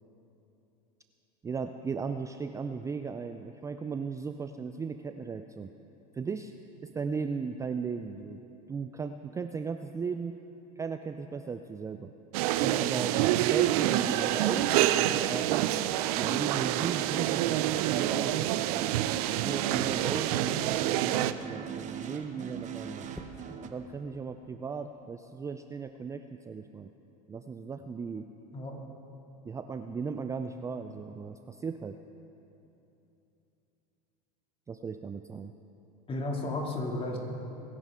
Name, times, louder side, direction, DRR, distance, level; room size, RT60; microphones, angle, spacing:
voice 1, 1.4-5.7 6.1-6.5 6.8-8.4 8.7-10.4 10.8-12.1 12.8-15.7 16.2-19.0 19.4-23.1 23.6-26.9 27.3-28.3 29.5-32.0 34.7-35.5, right 5 dB, 15° right, 8 dB, 0.4 m, -37 dB
sound 1, 12.3-21.3, right 13 dB, 70° right, 0.6 m, -27 dB
sound 2, 17.9-23.7, right 8 dB, 40° right, 1.0 m, -41 dB
sound 3, 23.1-23.7 25.7-25.9, equal, ahead, 1.1 m, -48 dB
voice 2, 36.1-37.2, left 2 dB, 30° left, 0 dB, 2.5 m, -34 dB
22.5 x 11.0 x 3.7 m, 3.0 s
hypercardioid pair, 100°, 20 cm